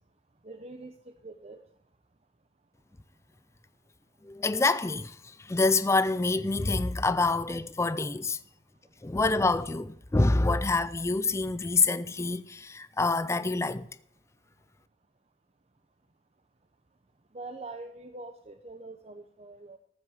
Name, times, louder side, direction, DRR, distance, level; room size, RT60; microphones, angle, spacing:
voice 1, 0.4-0.9 1.2-1.6 17.3-19.8, right 2 dB, 35° right, 0.8 m, -43 dB
voice 2, 4.2-8.4 9.0-13.9, left 3 dB, 15° left, 0.4 m, -26 dB
14.0 x 6.2 x 7.9 m
head